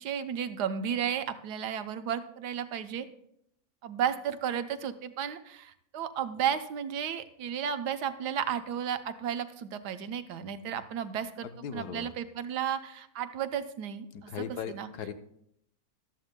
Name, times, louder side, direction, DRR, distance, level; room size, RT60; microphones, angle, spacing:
voice 1, 0.0-3.1 3.8-14.9, right 8 dB, 85° right, 10 dB, 1.4 m, -33 dB
voice 2, 11.4-12.1 14.1-15.1, left 8 dB, 80° left, 9 dB, 1.3 m, -38 dB
15.0 x 12.5 x 2.2 m, 0.73 s
omnidirectional pair, 1.7 m